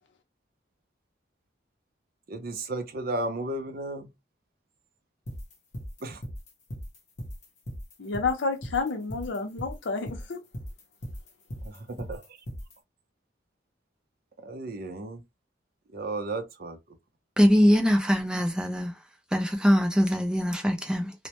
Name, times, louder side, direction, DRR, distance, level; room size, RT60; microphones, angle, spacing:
voice 1, 2.3-4.1 6.0-6.2 11.6-12.2 14.4-15.2 15.9-16.8, right 2 dB, 55° right, 0.5 m, -34 dB
sound 1, 5.3-12.7, equal, 40° left, 0.7 m, -38 dB
voice 2, 8.0-10.4, left 4 dB, 85° left, 0.6 m, -30 dB
voice 3, 17.4-19.0 19.3-21.1, equal, 5° right, 0.5 m, -22 dB
2.1 x 2.1 x 2.8 m
head